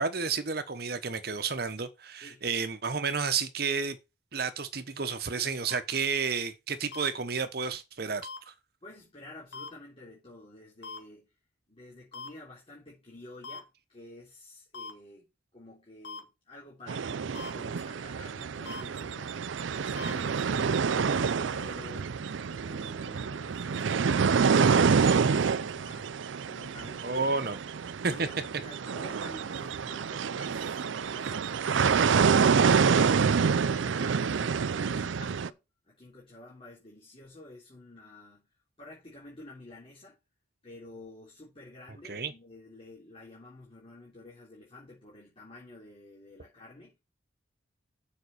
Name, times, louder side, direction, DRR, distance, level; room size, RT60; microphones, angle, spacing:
voice 1, 0.0-4.0 4.3-8.3 27.0-27.6 28.0-28.3 42.0-42.3, right 5 dB, 55° right, 1.0 m, -31 dB
sound 1, 5.7-5.8 6.9-7.1 8.2-8.4 9.5-9.7 10.8-11.0 12.1-12.3 13.4-13.6 14.7-14.9 16.0-16.2 17.3-17.5 18.7-18.8 20.0-20.1, left 3 dB, 65° left, 2.1 m, -40 dB
voice 2, 8.8-11.3 11.7-26.2 26.4-27.3 28.1-28.3 28.6-35.6 35.8-38.5 38.8-40.2 40.6-47.0, left 2 dB, 30° left, 3.5 m, -50 dB
sound 2, 16.9-35.5, right 6 dB, 80° right, 0.5 m, -27 dB
7.3 x 5.3 x 6.6 m
head